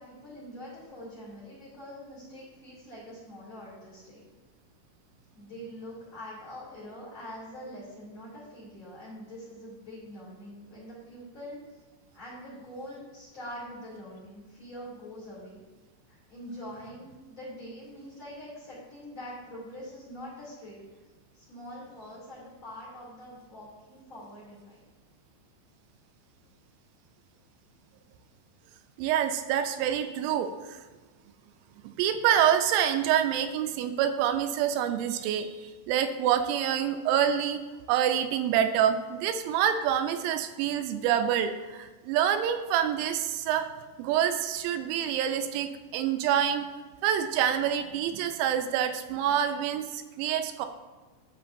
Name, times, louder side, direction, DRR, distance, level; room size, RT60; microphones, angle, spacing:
voice 1, 0.0-4.2 5.3-11.8 12.1-15.6 16.1-20.8 21.3-24.8, equal, 35° left, -9 dB, 2.8 m, -44 dB
voice 2, 29.0-30.8 32.0-37.6 37.9-43.7 44.0-46.7 47.0-50.7, right 9 dB, 85° right, 8 dB, 2.9 m, -27 dB
12.5 x 5.2 x 2.6 m, 1.3 s
omnidirectional pair, 5.2 m